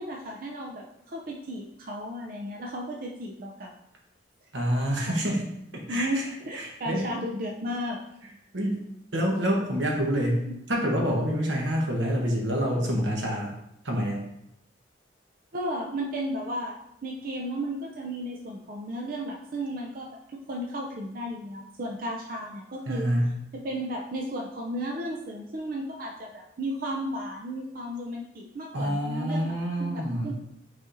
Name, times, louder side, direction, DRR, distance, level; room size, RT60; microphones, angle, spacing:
voice 1, 0.0-3.7 5.1-5.2 5.9-8.0 10.4-10.6 15.5-20.2 20.5-23.1 23.5-29.5 29.8-30.3, equal, 50° right, 0 dB, 0.5 m, -34 dB
voice 2, 4.5-5.5 5.7-6.1 6.5-7.1 8.5-8.8 9.1-13.5 13.8-14.2 22.9-23.3 28.7-30.3, equal, 85° right, 0 dB, 1.1 m, -27 dB
4.7 x 4.2 x 2.6 m, 0.78 s
head